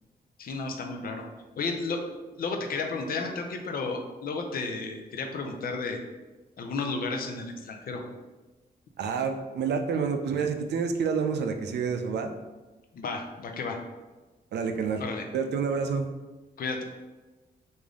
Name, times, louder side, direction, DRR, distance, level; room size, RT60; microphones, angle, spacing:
voice 1, 0.4-1.2 1.6-6.0 6.6-8.0 12.9-13.8 15.0-15.3 16.6-16.8, left 3 dB, 60° left, 3 dB, 0.5 m, -33 dB
voice 2, 9.0-12.3 14.5-15.0 15.3-16.1, right 5 dB, 85° right, 6 dB, 0.4 m, -28 dB
3.3 x 2.6 x 3.6 m, 1.2 s
wide cardioid pair, 135°, 17 cm